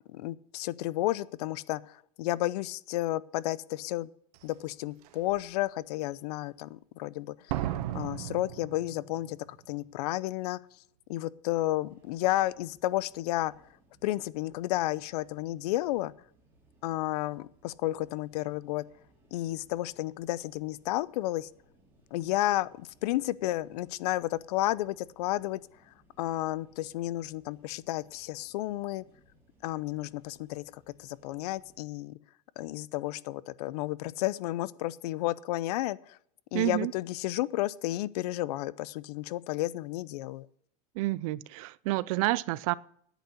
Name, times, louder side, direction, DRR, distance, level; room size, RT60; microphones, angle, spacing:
voice 1, 0.1-4.1 4.4-7.7 7.9-10.6 11.1-13.5 14.0-16.1 16.8-18.8 19.3-21.5 22.1-25.6 26.2-29.0 29.6-32.2 32.6-36.2 36.5-40.5, left 16 dB, 80° left, 0.6 m, -32 dB
Slam, 4.3-4.4 5.0-5.4 7.5-9.4 9.6-9.7, right 13 dB, 75° right, 0.8 m, -35 dB
sound 1, 11.9-31.8, right 1 dB, 10° right, 3.5 m, -65 dB
voice 2, 36.5-36.9 40.9-42.7, right 18 dB, 60° right, 0.5 m, -29 dB
10.0 x 8.3 x 8.3 m
supercardioid pair, 170°, 20 cm